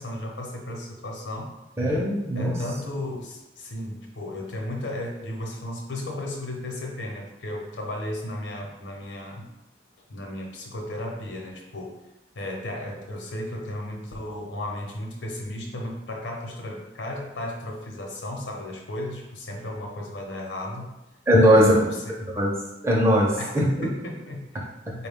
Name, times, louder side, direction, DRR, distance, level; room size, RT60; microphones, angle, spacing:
voice 1, 0.0-1.5 2.3-9.5 10.1-12.0 12.3-21.0 21.4-22.1 23.4-24.7 25.0-25.1, left 1 dB, 85° left, 1 dB, 0.8 m, -34 dB
voice 2, 1.8-2.6 21.3-21.7 22.3-22.5 22.8-23.6 24.9-25.0, equal, 15° right, -3 dB, 0.6 m, -19 dB
4.5 x 2.3 x 3.5 m, 1.0 s
head